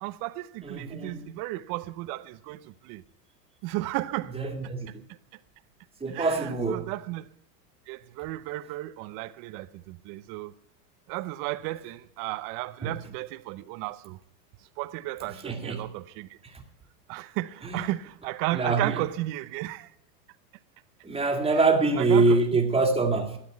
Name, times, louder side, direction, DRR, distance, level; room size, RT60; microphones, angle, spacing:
voice 1, 0.0-3.0 3.6-4.4 6.1-7.3 7.9-10.5 11.1-14.2 14.8-16.4 17.1-19.9 21.5-21.7 22.0-22.4, right 18 dB, 40° right, 0.8 m, -34 dB
voice 2, 0.6-1.3 4.3-4.9 6.0-6.9 12.8-12.9 15.4-15.9 17.7-17.8 18.5-18.9 21.0-23.4, right 3 dB, 10° right, 2.1 m, -24 dB
13.0 x 7.9 x 9.4 m
hypercardioid pair, 115°, 49 cm